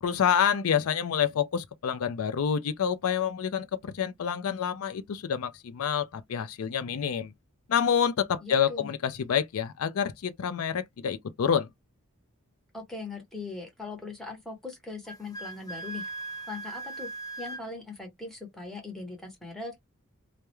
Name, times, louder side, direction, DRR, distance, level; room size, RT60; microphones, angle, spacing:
voice 1, 0.0-7.3 7.7-11.7, left 8 dB, 80° left, 0.4 m, -28 dB
voice 2, 8.4-8.9 12.7-16.0 16.5-17.1 17.4-19.8, left 3 dB, ahead, 0.9 m, -40 dB
Wind instrument woodwind instrument, 15.1-17.6, right 3 dB, 15° left, 0.4 m, -39 dB
2.3 x 2.1 x 2.9 m
head